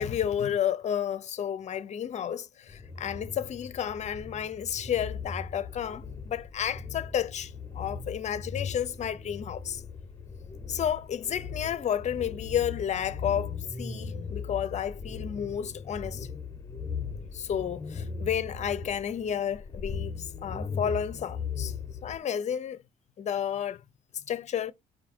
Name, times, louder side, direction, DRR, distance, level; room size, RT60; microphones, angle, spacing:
voice 1, 0.0-9.8 10.7-16.3 17.3-21.7 22.0-22.8 23.2-23.8 24.3-24.7, left 9 dB, 45° left, 0.6 m, -31 dB
sound 1, 2.7-22.2, left 5 dB, 20° left, 0.9 m, -38 dB
4.7 x 2.6 x 4.3 m
cardioid pair, 110°, 17 cm